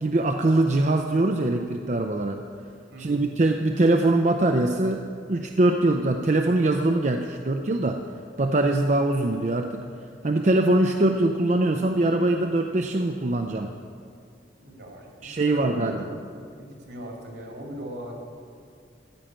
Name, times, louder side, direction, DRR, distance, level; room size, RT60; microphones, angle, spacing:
voice 1, 0.0-2.4 3.0-5.0 5.3-8.0 8.4-9.8 10.2-13.7 15.2-16.0, right 2 dB, 40° right, 4 dB, 0.5 m, -22 dB
voice 2, 2.9-3.3 14.6-16.1 16.6-18.1, equal, 70° right, 0 dB, 2.4 m, -39 dB
14.5 x 5.7 x 8.9 m, 2.3 s
head